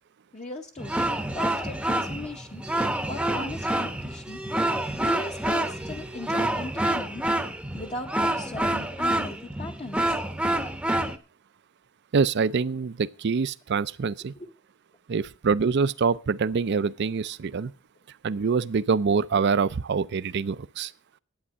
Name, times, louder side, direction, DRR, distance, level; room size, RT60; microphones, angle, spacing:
voice 1, 0.3-1.1 1.3-2.6 3.1-4.4 5.0-7.2 7.7-10.2 14.4-14.5, left 2 dB, 35° left, 0.8 m, -38 dB
sound 1, 0.8-11.2, right 1 dB, 5° right, 0.8 m, -27 dB
voice 2, 12.1-14.3 15.1-17.7 18.2-20.9, right 5 dB, 55° right, 0.5 m, -25 dB
11.0 x 8.7 x 6.2 m
head